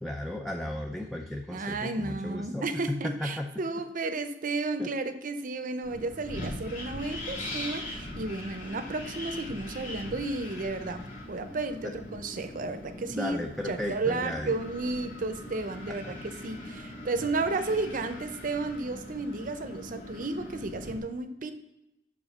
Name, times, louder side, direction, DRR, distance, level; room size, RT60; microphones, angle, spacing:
voice 1, 0.0-3.5 4.8-4.9 11.8-11.9 13.1-14.6 15.9-16.0 16.3-16.4, left 1 dB, ahead, 3 dB, 0.4 m, -35 dB
voice 2, 1.5-11.0 11.3-13.4 13.6-21.5, right 3 dB, 50° right, 9 dB, 0.6 m, -33 dB
Wind, 5.8-21.0, left 1 dB, 45° left, 1.7 m, -41 dB
6.1 x 5.0 x 5.3 m, 0.91 s
head